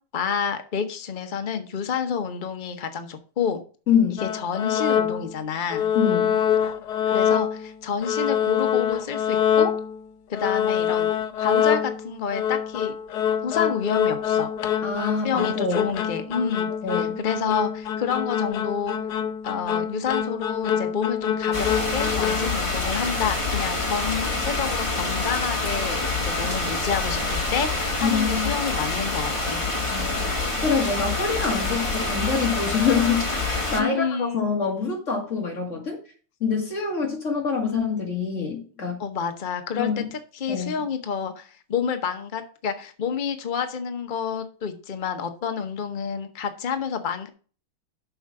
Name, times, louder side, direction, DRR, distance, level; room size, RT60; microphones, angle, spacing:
voice 1, 0.1-3.6 4.2-5.9 7.1-9.7 10.3-11.1 11.4-12.9 13.4-14.5 15.2-19.0 19.4-29.6 33.8-34.5 39.0-47.3, left 6 dB, 90° left, 7 dB, 0.4 m, -29 dB
voice 2, 3.9-4.2 5.9-6.4 14.8-15.9 16.8-17.2 28.0-28.5 29.9-36.0 36.4-39.0 39.8-40.0 40.5-40.7, left 5 dB, 35° left, 0 dB, 2.5 m, -25 dB
sound 1, 4.2-5.4 5.7-7.7 8.0-10.0 10.3-22.5, left 9 dB, 65° left, 1.2 m, -25 dB
sound 2, 21.5-33.8, left 3 dB, 15° left, 1.4 m, -26 dB
7.1 x 5.6 x 6.0 m, 0.39 s
omnidirectional pair, 2.3 m